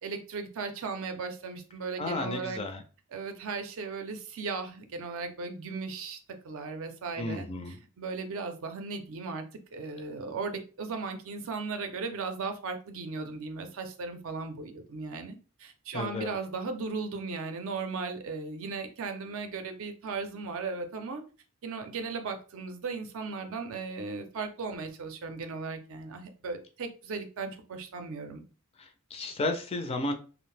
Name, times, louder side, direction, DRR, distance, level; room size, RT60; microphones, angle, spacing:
voice 1, 0.0-2.6 3.1-6.2 6.4-7.5 8.0-9.4 9.7-21.2 21.6-28.4, right 4 dB, 65° right, 6 dB, 0.5 m, -36 dB
voice 2, 2.0-2.8 7.2-7.8 15.9-16.3 28.8-30.1, left 2 dB, 30° left, 6 dB, 0.4 m, -33 dB
2.6 x 2.0 x 3.1 m, 0.36 s
head